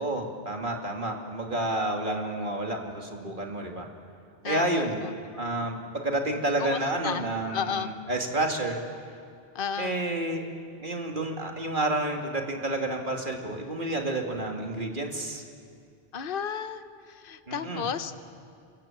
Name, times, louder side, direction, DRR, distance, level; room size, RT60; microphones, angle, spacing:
voice 1, 0.0-3.9 4.4-5.0 5.4-8.8 9.8-10.4 10.8-15.4 17.5-17.8, right 1 dB, 50° right, 1 dB, 2.7 m, -30 dB
voice 2, 4.4-5.1 6.6-7.9 9.5-10.0 16.1-18.1, left 7 dB, 55° left, 10 dB, 1.1 m, -33 dB
28.5 x 24.0 x 7.4 m, 2.3 s
omnidirectional pair, 1.1 m